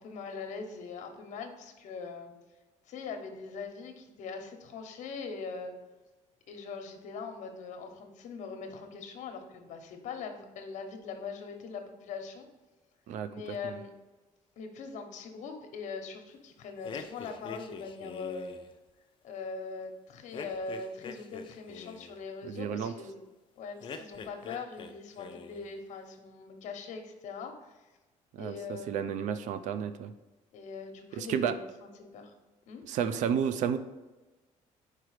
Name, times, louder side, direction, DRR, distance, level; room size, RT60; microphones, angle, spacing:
voice 1, 0.0-2.3 2.9-5.7 6.5-12.5 13.2-13.9 14.6-18.5 19.2-23.2 23.6-27.8 28.4-29.2 30.5-32.3 32.7-32.8, left 4 dB, 70° left, 5 dB, 1.0 m, -41 dB
sound 1, 16.8-18.7 20.3-22.2 23.8-24.9 25.2-25.7, left 5 dB, 40° left, 0.5 m, -44 dB
voice 2, 22.4-22.9 28.3-30.1 31.1-31.5 32.9-33.8, right 8 dB, 70° right, 12 dB, 0.4 m, -31 dB
4.8 x 4.6 x 4.8 m, 1.1 s
cardioid pair, 140°, 13 cm